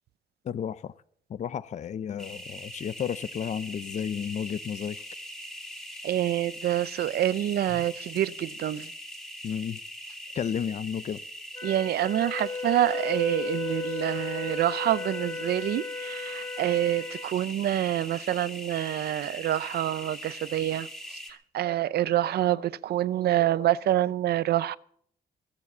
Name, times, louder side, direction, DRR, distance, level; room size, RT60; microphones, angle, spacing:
voice 1, 0.4-0.9 1.3-5.0 9.4-9.8 10.3-11.2, left 8 dB, 45° left, 0.5 m, -32 dB
sound 1, 2.2-21.3, equal, 5° left, 2.3 m, -42 dB
voice 2, 6.0-8.9 11.6-24.8, right 13 dB, 85° right, 0.6 m, -27 dB
Wind instrument woodwind instrument, 11.6-17.3, left 4 dB, 20° left, 2.4 m, -35 dB
21.5 x 7.4 x 7.2 m
cardioid pair, 130°, 16 cm